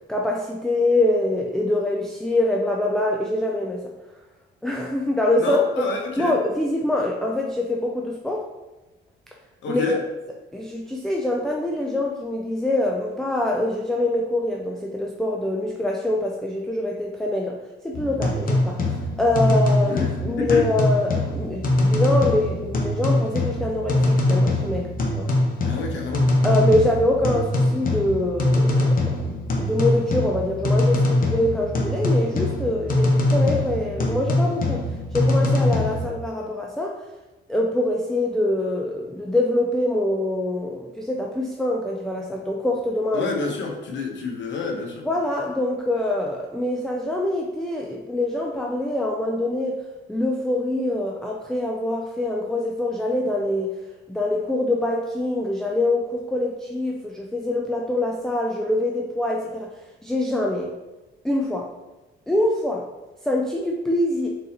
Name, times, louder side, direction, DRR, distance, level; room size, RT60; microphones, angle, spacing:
voice 1, 0.1-3.8 4.6-5.6 6.2-8.4 9.7-10.0 10.5-17.6 17.8-18.8 19.2-24.9 25.1-25.3 26.4-34.8 35.1-36.9 37.5-43.3 45.0-49.8 50.1-53.7 54.1-59.7 60.0-60.7 61.2-61.7 62.3-62.8 63.2-64.3, left 1 dB, ahead, -1 dB, 0.4 m, -24 dB
voice 2, 5.4-6.4 9.6-10.0 19.9-20.6 25.6-26.3 43.1-45.0, left 4 dB, 70° left, 1 dB, 1.0 m, -28 dB
sound 1, 17.9-36.1, left 1 dB, 45° left, 0.9 m, -22 dB
3.9 x 3.9 x 2.8 m, 1.1 s
cardioid pair, 90°, 20 cm